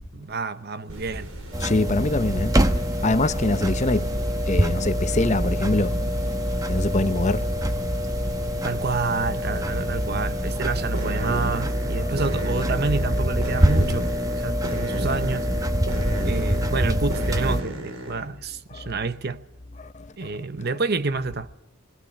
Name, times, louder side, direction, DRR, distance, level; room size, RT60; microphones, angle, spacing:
voice 1, 0.1-1.3 8.6-15.5 16.2-19.4 20.2-21.5, right 4 dB, 50° right, 0.9 m, -28 dB
sound 1, 0.9-18.3, right 1 dB, 75° right, 3.9 m, -36 dB
sound 2, 1.5-17.6, equal, 15° right, 1.0 m, -25 dB
voice 2, 1.6-2.6 3.0-4.1 4.5-6.0 6.7-7.6 12.0-12.1 16.0-16.3 18.7-18.9 19.8-20.1, left 2 dB, 35° left, 0.8 m, -24 dB
21.0 x 16.5 x 8.7 m
head